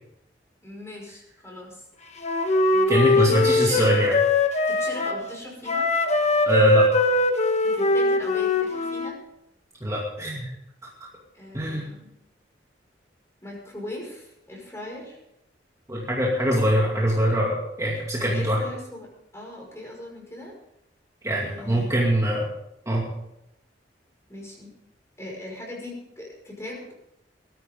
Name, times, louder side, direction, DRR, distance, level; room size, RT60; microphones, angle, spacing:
voice 1, 0.6-1.8 2.6-4.1 4.7-5.9 7.6-9.2 11.3-12.1 13.4-15.2 18.2-20.5 21.4-22.0 24.3-24.7 25.2-26.9, left 1 dB, 15° left, -1 dB, 5.4 m, -39 dB
Wind instrument woodwind instrument, 2.2-5.2 5.7-9.1, left 2 dB, 40° left, 1.4 m, -21 dB
voice 2, 2.9-4.1 6.5-6.9 9.8-10.5 11.5-11.9 15.9-18.6 21.2-22.5 22.9-23.1, equal, 15° right, -4 dB, 2.4 m, -23 dB
20.0 x 13.5 x 3.7 m, 0.82 s
head